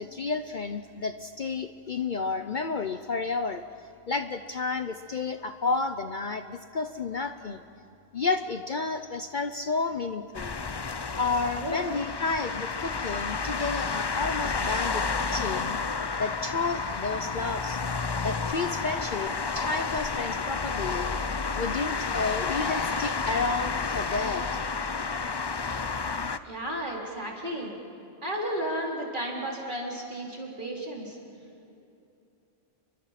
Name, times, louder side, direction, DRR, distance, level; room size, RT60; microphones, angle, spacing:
voice 1, 0.0-3.6 4.1-7.6 8.1-10.6 11.2-15.0 15.3-15.8 16.2-17.8 18.2-21.2 21.5-24.4, left 4 dB, 45° left, 8 dB, 0.8 m, -31 dB
sound 1, 10.3-26.4, left 4 dB, 30° left, 0.5 m, -31 dB
voice 2, 26.4-27.8 28.2-31.2, right 1 dB, 45° right, -2 dB, 4.2 m, -33 dB
29.5 x 23.5 x 5.9 m, 2.7 s
omnidirectional pair, 1.2 m